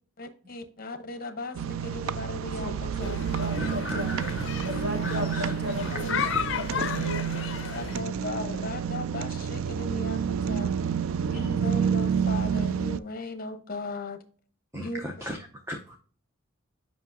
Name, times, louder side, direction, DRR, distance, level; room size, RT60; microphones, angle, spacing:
voice 1, 0.2-2.7 3.0-3.2 5.1-5.2 5.9-6.1 6.7-7.0 7.7-10.7 11.2-14.2 14.7-15.0, left 3 dB, 45° left, 8 dB, 0.9 m, -37 dB
sound 1, 1.5-13.0, right 7 dB, 75° right, 0.3 m, -29 dB
voice 2, 2.5-4.2 4.6-7.2, left 1 dB, 50° right, 0 dB, 2.2 m, -36 dB
sound 2, 3.0-8.0, left 6 dB, 60° left, 0.5 m, -34 dB
voice 3, 3.6-4.5 5.0-5.5 5.9-6.1 6.8-7.1 11.3-11.5 14.7-15.4 15.7-16.0, equal, 10° right, 2 dB, 0.6 m, -37 dB
8.1 x 5.5 x 2.6 m, 0.43 s
head